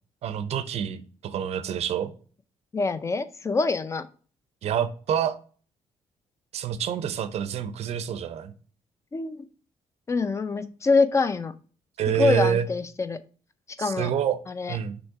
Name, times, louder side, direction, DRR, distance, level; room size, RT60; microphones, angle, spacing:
voice 1, 0.2-2.1 4.6-5.4 6.5-8.5 12.0-12.7 13.8-14.4 14.7-15.0, right 8 dB, 65° right, 0.6 m, -27 dB
voice 2, 2.7-4.1 9.1-9.5 10.1-11.5 12.2-13.2 13.8-14.1 14.5-14.8, left 4 dB, 25° left, 0.5 m, -25 dB
6.2 x 3.2 x 4.7 m
cardioid pair, 125°, 12 cm